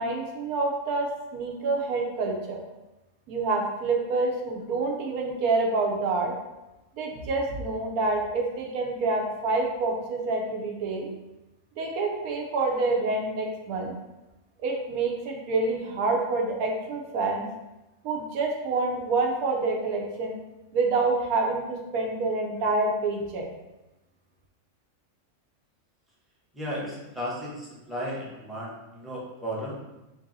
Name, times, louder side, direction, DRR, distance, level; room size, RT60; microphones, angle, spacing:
voice 1, 0.0-2.6 3.3-6.3 7.0-11.1 11.8-13.9 14.6-17.4 18.0-20.3 20.7-23.5, right 3 dB, 85° right, 0 dB, 1.1 m, -27 dB
voice 2, 26.5-29.8, equal, ahead, -7 dB, 0.5 m, -34 dB
3.0 x 2.7 x 3.9 m, 0.99 s
omnidirectional pair, 1.5 m